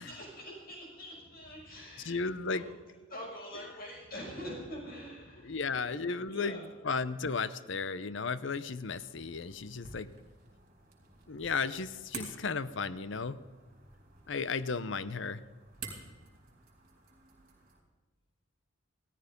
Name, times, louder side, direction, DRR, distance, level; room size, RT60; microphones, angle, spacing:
voice 1, 0.0-2.7 3.1-6.9, equal, 45° left, -3 dB, 6.2 m, -45 dB
voice 2, 2.0-2.7 5.4-10.1 11.3-13.4 14.3-15.4, left 4 dB, 60° left, 15 dB, 0.7 m, -34 dB
sound 1, 8.6-17.8, right 4 dB, 40° right, 3.8 m, -51 dB
16.5 x 14.0 x 5.2 m, 1.4 s
head